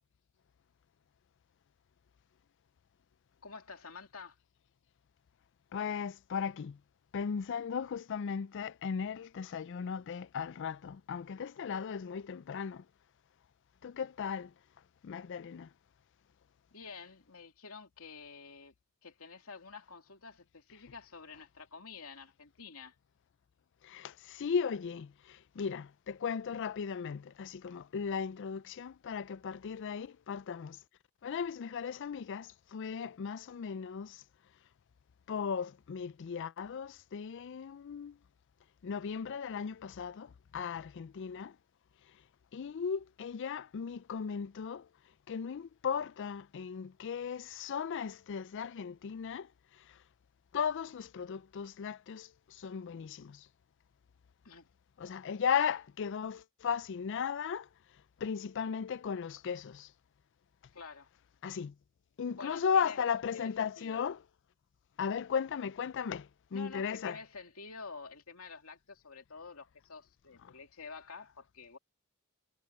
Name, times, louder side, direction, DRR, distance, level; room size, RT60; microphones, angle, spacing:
voice 1, 3.4-4.4 16.7-18.7 19.0-22.9 54.4-54.7 60.7-61.1 62.3-63.0 63.3-64.1 66.5-71.8, left 5 dB, 75° left, 3.0 m, -49 dB
voice 2, 5.7-6.8 7.1-12.8 13.8-14.5 15.0-15.7 23.8-30.8 31.2-34.2 35.3-38.2 38.8-41.6 42.5-44.9 45.3-49.5 49.9-50.0 50.5-53.5 55.0-57.7 58.2-59.9 61.4-61.7 62.2-64.2 65.0-67.2, left 6 dB, 55° left, 0.4 m, -36 dB
head